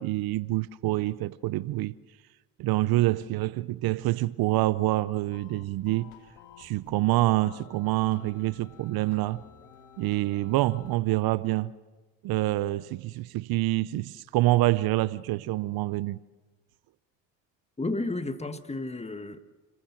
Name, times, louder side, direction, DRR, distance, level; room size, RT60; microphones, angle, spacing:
voice 1, 0.0-1.9 2.6-6.1 6.6-9.4 10.0-11.7 12.2-16.2, right 17 dB, 60° right, 0.7 m, -26 dB
sound 1, 5.3-11.0, left 8 dB, 70° left, 2.6 m, -52 dB
voice 2, 17.8-19.4, left 2 dB, 15° left, 1.7 m, -32 dB
28.5 x 15.5 x 7.4 m
hypercardioid pair, 65°, 42 cm